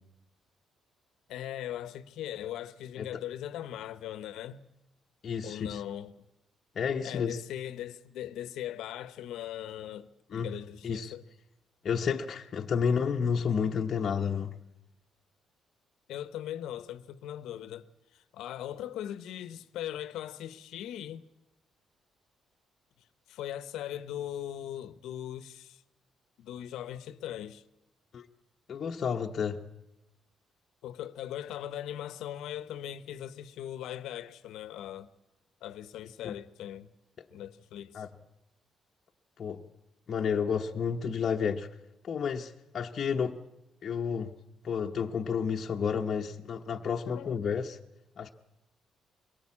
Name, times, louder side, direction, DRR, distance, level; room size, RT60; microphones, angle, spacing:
voice 1, 1.3-4.6 5.4-6.1 7.0-11.2 16.1-17.9 18.1-21.2 23.3-25.8 26.4-27.6 30.8-35.1 35.6-36.9 37.3-38.0 47.1-47.4, left 11 dB, 85° left, 0.9 m, -39 dB
voice 2, 5.2-5.8 6.7-7.4 10.3-10.5 10.8-11.1 11.8-14.5 28.1-28.3 28.7-29.7 36.2-36.3 37.9-38.1 39.4-39.6 40.1-41.7 42.0-43.4 43.8-44.3 44.6-47.8 48.2-48.3, left 6 dB, 50° left, 0.9 m, -31 dB
22.5 x 17.5 x 8.5 m
cardioid pair, 90°, 0 cm